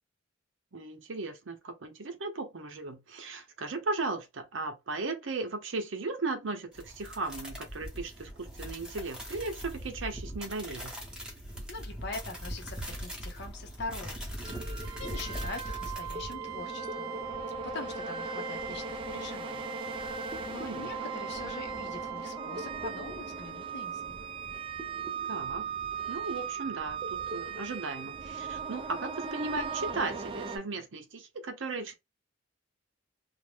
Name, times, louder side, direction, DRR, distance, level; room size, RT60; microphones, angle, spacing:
voice 1, 0.7-11.0 20.6-20.9 25.3-25.7 26.1-31.9, right 3 dB, 75° right, 0.7 m, -36 dB
sound 1, 6.7-16.3, equal, 5° right, 0.8 m, -40 dB
voice 2, 11.7-17.1 17.6-20.2 20.5-24.1, left 3 dB, 60° left, 0.6 m, -43 dB
sound 2, 14.4-30.6, right 5 dB, 25° right, 0.4 m, -37 dB
2.5 x 2.1 x 3.2 m
head